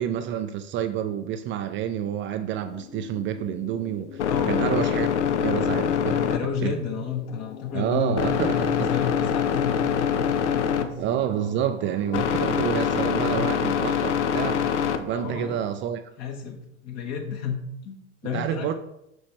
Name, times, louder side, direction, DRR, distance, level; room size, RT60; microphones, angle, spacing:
voice 1, 0.0-5.1 5.4-6.2 6.6-6.8 7.7-9.0 11.0-16.0 18.3-18.7, right 10 dB, 35° right, 0.4 m, -28 dB
sound 1, 2.6-15.6, left 8 dB, 70° left, 0.6 m, -26 dB
voice 2, 4.3-4.8 6.0-11.0 13.1-13.6 15.1-15.5 16.2-18.7, left 6 dB, 45° left, 1.4 m, -32 dB
6.1 x 6.1 x 3.0 m
figure-of-eight pair, 70°, 36 cm